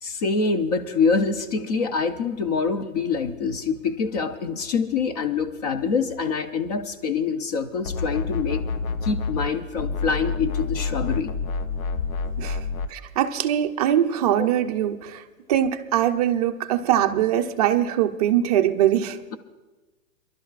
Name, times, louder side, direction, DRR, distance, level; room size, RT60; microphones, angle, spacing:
voice 1, 0.0-8.6 9.0-11.3 14.4-14.5, left 5 dB, 30° left, 10 dB, 0.5 m, -25 dB
sound 1, 7.8-9.5 9.8-12.9, left 4 dB, 80° left, 0.9 m, -28 dB
voice 2, 12.9-15.2 15.5-19.2, right 11 dB, 30° right, 5 dB, 0.5 m, -22 dB
29.5 x 11.5 x 2.4 m, 1.2 s
hypercardioid pair, 155°, 41 cm